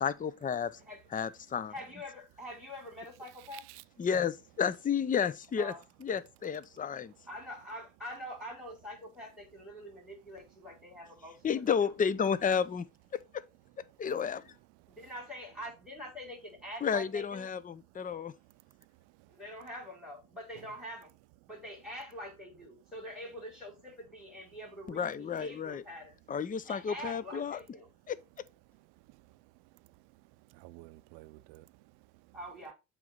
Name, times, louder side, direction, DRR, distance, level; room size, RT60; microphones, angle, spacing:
voice 1, 0.0-0.7 1.1-1.7 4.0-5.7 6.0-7.1 11.4-12.9 13.1-13.2 14.0-14.4 16.8-18.3 24.9-25.8 26.3-27.6 28.1-28.2, left 7 dB, 20° left, 0.6 m, -31 dB
voice 2, 1.7-3.6 5.6-5.8 7.3-11.3 11.8-11.9 14.9-17.5 19.3-21.1 21.5-26.2 26.6-27.9 32.3-32.7, equal, ahead, 4.9 m, -45 dB
voice 3, 3.4-3.8 14.8-14.9 18.0-18.1 19.2-19.3 20.6-20.7 29.1-29.4 29.7-32.4, right 19 dB, 70° right, 0.6 m, -54 dB
7.6 x 3.3 x 5.3 m
supercardioid pair, 80°, 41 cm